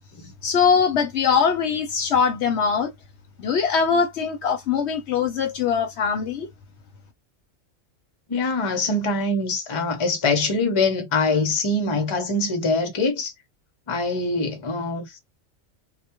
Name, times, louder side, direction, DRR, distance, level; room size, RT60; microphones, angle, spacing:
voice 1, 0.4-2.9 3.4-6.5, left 6 dB, 65° left, 0.8 m, -22 dB
voice 2, 8.3-13.3 13.9-15.2, left 3 dB, 35° left, 0.5 m, -23 dB
2.2 x 2.2 x 2.8 m
omnidirectional pair, 1.3 m